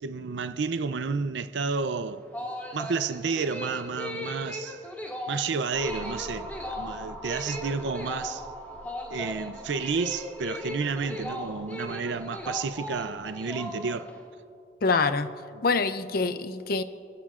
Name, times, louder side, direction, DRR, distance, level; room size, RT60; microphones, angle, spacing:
voice 1, 0.0-2.2 2.7-4.8 5.3-6.5 6.8-8.5 9.1-14.1 15.6-15.7, right 5 dB, 80° right, 0.5 m, -31 dB
sound 1, 2.1-14.2, left 1 dB, 10° left, 1.8 m, -37 dB
sound 2, 5.7-13.3, right 1 dB, 10° right, 4.4 m, -44 dB
voice 2, 14.8-15.3 15.6-16.8, left 4 dB, 55° left, 0.5 m, -25 dB
29.5 x 16.0 x 2.5 m
head